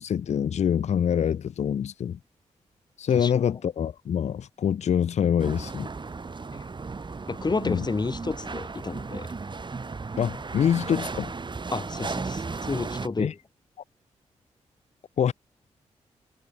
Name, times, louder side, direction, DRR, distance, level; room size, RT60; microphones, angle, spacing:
voice 1, 0.0-2.2 3.0-5.9 7.6-7.9 10.2-11.3 13.2-13.3 15.2-15.3, left 8 dB, 60° left, 0.6 m, -25 dB
sound 1, 5.4-13.1, right 4 dB, 40° right, 1.3 m, -35 dB
voice 2, 7.3-9.3 11.7-12.4 12.7-13.4, left 3 dB, 35° left, 1.5 m, -30 dB
supercardioid pair, 45°, 13 cm